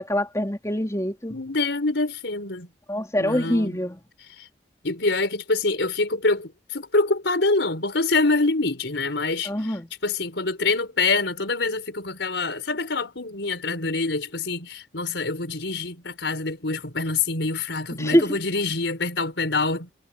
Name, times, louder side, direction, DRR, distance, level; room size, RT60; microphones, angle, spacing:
voice 1, 0.0-1.3 2.9-4.0 9.5-9.9 18.0-18.4, equal, 15° left, 3.9 m, -24 dB
voice 2, 1.3-2.7 3.2-3.8 4.3-4.5 4.8-19.9, left 3 dB, 85° left, 4.5 m, -25 dB
head